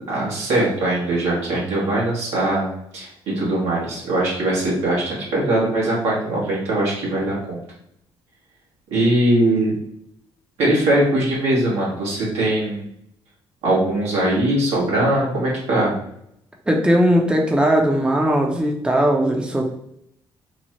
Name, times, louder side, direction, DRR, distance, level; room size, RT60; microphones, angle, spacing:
voice 1, 0.1-2.7 2.9-7.6 8.9-9.8 10.6-12.9 13.6-15.9, right 1 dB, 75° right, -5 dB, 1.3 m, -21 dB
voice 2, 16.7-19.6, equal, 10° right, 1 dB, 0.6 m, -18 dB
3.1 x 2.1 x 2.9 m, 0.75 s
hypercardioid pair, 55°, 11 cm